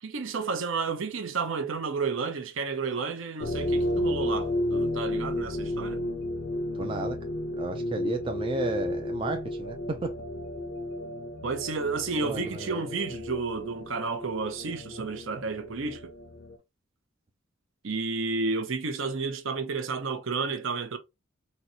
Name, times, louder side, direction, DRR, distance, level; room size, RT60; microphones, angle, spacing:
voice 1, 0.0-6.0 11.4-16.1 17.8-21.0, right 4 dB, 65° right, 0.6 m, -31 dB
sound 1, 3.4-16.6, left 1 dB, 50° left, 0.5 m, -32 dB
voice 2, 6.8-7.2 7.6-10.1 12.2-12.8, right 2 dB, 25° right, 0.3 m, -33 dB
3.9 x 2.1 x 2.8 m
head